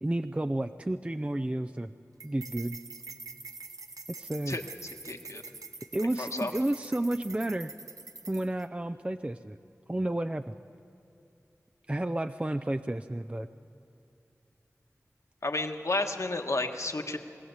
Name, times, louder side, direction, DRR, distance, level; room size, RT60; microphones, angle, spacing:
voice 1, 0.0-1.9 2.2-2.8 4.2-4.6 5.9-7.7 8.3-9.6 9.9-10.5 11.9-13.5, right 1 dB, 20° right, 9 dB, 0.5 m, -31 dB
sound 1, 2.2-8.6, right 3 dB, 90° right, 0.9 m, -45 dB
voice 2, 5.0-5.4 6.2-6.5 15.4-17.2, left 2 dB, 60° left, 4 dB, 1.5 m, -31 dB
23.0 x 15.5 x 8.0 m, 2.7 s
wide cardioid pair, 40°, 6 cm